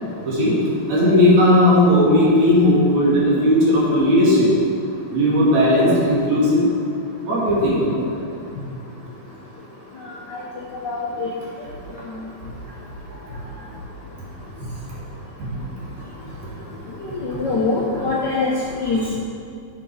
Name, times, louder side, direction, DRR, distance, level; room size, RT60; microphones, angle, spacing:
voice 1, 0.3-0.6 0.9-4.5 5.1-6.7 7.2-8.0 15.4-15.5 17.9-18.0, left 1 dB, 70° right, -6 dB, 3.5 m, -16 dB
voice 2, 10.8-11.3 17.0-18.5 18.8-19.2, left 3 dB, 65° left, -4 dB, 1.0 m, -23 dB
11.5 x 5.9 x 4.7 m, 2.5 s
omnidirectional pair, 3.3 m